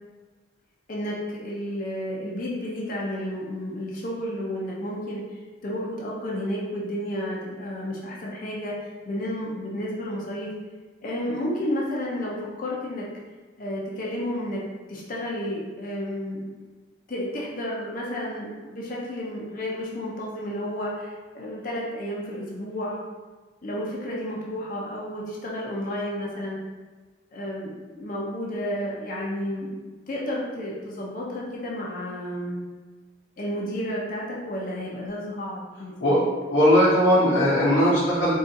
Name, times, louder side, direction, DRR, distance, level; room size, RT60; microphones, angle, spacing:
voice 1, 0.9-10.5 11.0-13.1 13.6-14.6 14.9-16.5 17.1-23.0 23.6-26.6 27.3-29.7 30.1-32.6 33.4-36.3, equal, 45° left, -5 dB, 0.5 m, -31 dB
voice 2, 36.5-38.3, equal, 75° left, -8 dB, 0.8 m, -19 dB
3.7 x 2.4 x 2.6 m, 1.3 s
head